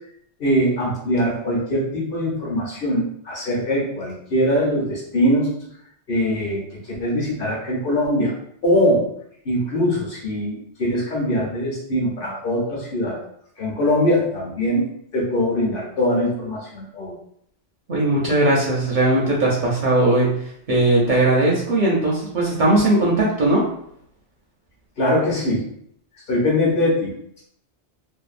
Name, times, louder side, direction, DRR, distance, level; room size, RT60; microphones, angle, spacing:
voice 1, 0.4-5.5 6.1-6.6 6.9-8.3 8.6-9.0 9.5-13.2 13.6-14.8 15.1-17.2 25.0-25.7 26.3-27.1, equal, 55° left, -3 dB, 0.8 m, -22 dB
voice 2, 17.9-20.3 20.7-23.7, right 2 dB, 55° right, -4 dB, 0.6 m, -18 dB
2.6 x 2.1 x 2.4 m, 0.70 s
omnidirectional pair, 1.2 m